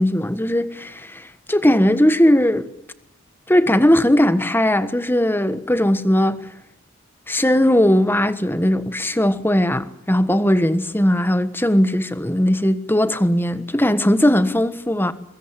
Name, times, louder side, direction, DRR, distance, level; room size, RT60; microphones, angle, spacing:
voice 1, 0.0-2.7 3.5-6.4 7.3-15.1, left 1 dB, 10° left, 1.4 m, -18 dB
24.0 x 20.5 x 10.0 m
head